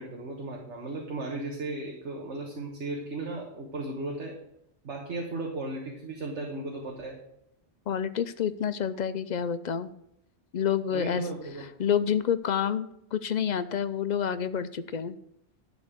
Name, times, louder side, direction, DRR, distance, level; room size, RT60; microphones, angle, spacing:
voice 1, 0.0-4.4 4.8-7.2 10.9-11.6, right 2 dB, 80° right, 0 dB, 1.7 m, -36 dB
voice 2, 7.9-9.9 10.5-11.2 11.8-15.2, left 8 dB, 55° left, 13 dB, 0.5 m, -28 dB
11.5 x 4.1 x 7.9 m, 0.78 s
omnidirectional pair, 1.2 m